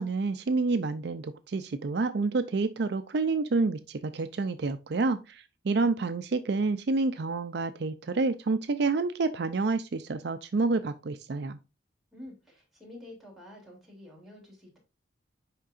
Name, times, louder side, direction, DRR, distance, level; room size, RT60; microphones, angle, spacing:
voice 1, 0.0-11.6, right 3 dB, 60° right, 0.5 m, -28 dB
voice 2, 12.1-14.8, left 1 dB, ahead, 2.9 m, -48 dB
10.0 x 3.7 x 2.5 m
head